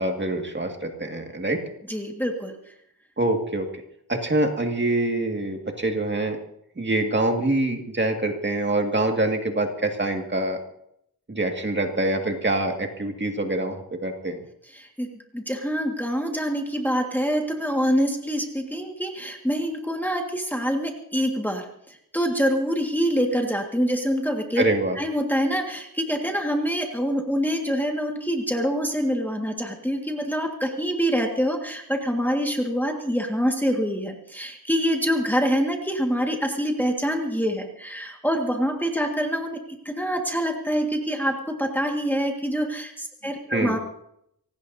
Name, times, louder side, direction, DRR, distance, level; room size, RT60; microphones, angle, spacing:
voice 1, 0.0-1.6 3.2-3.7 4.1-6.4 6.8-10.6 11.3-14.4 24.6-25.0 43.5-43.8, right 2 dB, 30° right, 3 dB, 2.1 m, -25 dB
voice 2, 1.9-2.6 14.7-15.1 15.3-24.6 25.0-39.6 39.9-43.8, equal, 5° left, 1 dB, 1.8 m, -25 dB
25.0 x 18.0 x 2.7 m, 0.74 s
wide cardioid pair, 130°, 38 cm